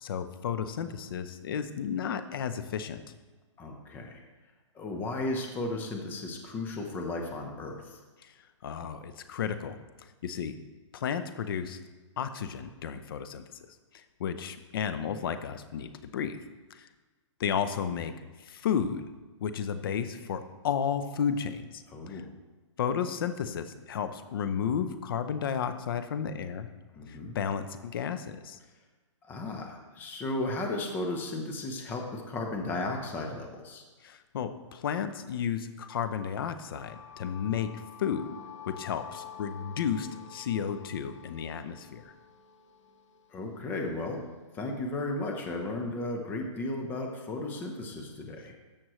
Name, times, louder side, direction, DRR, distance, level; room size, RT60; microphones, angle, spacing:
voice 1, 0.0-3.0 8.6-9.8 10.2-10.6 10.9-11.8 12.2-13.4 13.9-16.4 16.7-16.9 17.4-18.1 18.4-19.0 19.4-22.2 22.8-26.7 27.1-28.6 34.0-37.7 38.0-38.2 38.7-42.0, left 7 dB, 45° left, 10 dB, 0.7 m, -32 dB
voice 2, 3.6-4.2 4.7-8.0 21.9-22.2 26.9-27.4 29.3-33.8 43.3-44.2 44.5-48.6, left 2 dB, 10° left, 2 dB, 0.8 m, -35 dB
sound 1, 36.3-44.3, left 9 dB, 70° left, 1.1 m, -49 dB
14.0 x 6.1 x 3.1 m, 1.3 s
hypercardioid pair, 155°, 16 cm